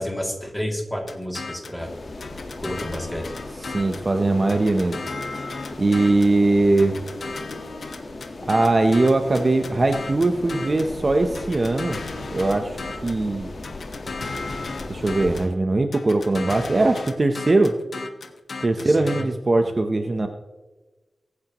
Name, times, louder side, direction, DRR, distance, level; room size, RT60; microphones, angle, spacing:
voice 1, 0.0-1.9 2.6-3.3 18.8-19.3, equal, 5° left, 0 dB, 2.6 m, -30 dB
sound 1, 1.1-1.8 2.2-4.1 4.5-6.4 6.8-10.9 11.3-13.2 13.6-15.5 15.9-19.2, left 3 dB, 65° left, 1.2 m, -35 dB
sound 2, 1.8-15.5, left 2 dB, 50° left, 1.4 m, -37 dB
voice 2, 3.6-5.0 5.8-7.0 8.5-12.0 12.3-13.5 14.9-17.8 18.6-20.3, right 2 dB, 35° right, 5 dB, 0.8 m, -20 dB
23.0 x 9.6 x 3.0 m, 1.2 s
wide cardioid pair, 125°, 0 cm